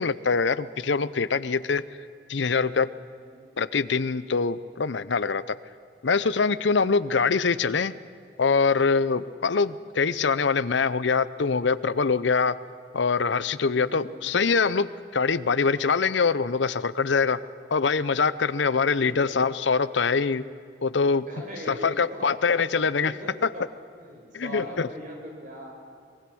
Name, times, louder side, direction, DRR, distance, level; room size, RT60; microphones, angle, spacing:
voice 1, 0.0-1.8 2.3-2.9 3.6-5.4 6.0-7.9 8.4-12.5 12.9-14.9 15.1-17.4 17.7-20.4 20.8-21.2 21.6-23.1 23.4-23.5 24.3-24.9, left 5 dB, 85° left, 17 dB, 0.7 m, -24 dB
voice 2, 13.6-14.1 21.3-22.3 22.7-23.6 24.0-25.7, equal, 45° right, 0 dB, 5.6 m, -41 dB
24.5 x 22.0 x 6.2 m, 2.5 s
head